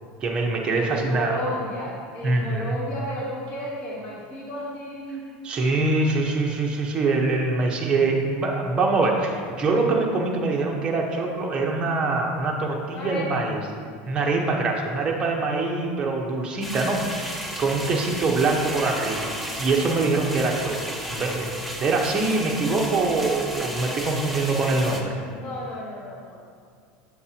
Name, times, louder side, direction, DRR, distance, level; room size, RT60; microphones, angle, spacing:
voice 1, 0.2-1.4 2.2-2.8 5.4-13.6 14.1-21.5 21.8-25.2, right 3 dB, 20° right, -1 dB, 0.9 m, -24 dB
voice 2, 0.7-5.3 12.9-13.5 25.2-26.4, equal, 30° left, -5 dB, 1.2 m, -33 dB
sound 1, 16.6-25.0, right 1 dB, ahead, 0.6 m, -33 dB
7.7 x 6.5 x 2.9 m, 2.2 s
supercardioid pair, 155°, 5 cm